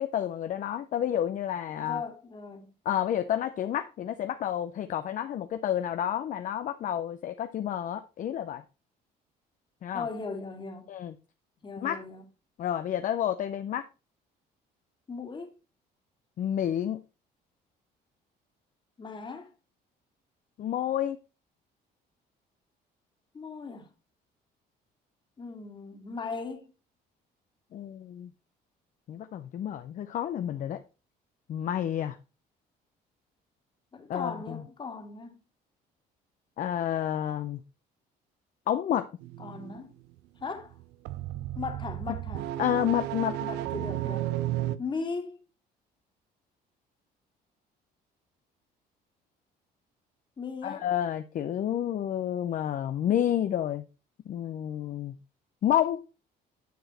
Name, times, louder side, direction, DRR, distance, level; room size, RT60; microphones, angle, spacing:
voice 1, 0.0-2.0 2.9-8.6 9.8-10.1 10.9-11.1 11.8-12.0 12.6-13.9 16.4-17.0 20.6-21.2 27.7-28.3 29.1-30.8 31.5-32.2 34.1-34.6 36.6-37.6 38.7-39.1 42.6-43.4 50.6-53.8 54.3-55.2 55.6-56.0, left 10 dB, 50° left, 0.6 m, -30 dB
voice 2, 1.8-2.7 9.9-10.9 11.6-12.2 15.1-15.5 19.0-19.5 23.3-23.9 25.4-26.7 33.9-35.4 39.4-39.9 40.4-40.8 41.6-42.5 43.4-44.3 44.8-45.4 50.4-50.9, left 4 dB, 30° left, 1.9 m, -38 dB
sound 1, 39.2-39.8 40.7-44.8, right 14 dB, 90° right, 0.5 m, -33 dB
9.2 x 4.9 x 4.1 m
cardioid pair, 110°, 17 cm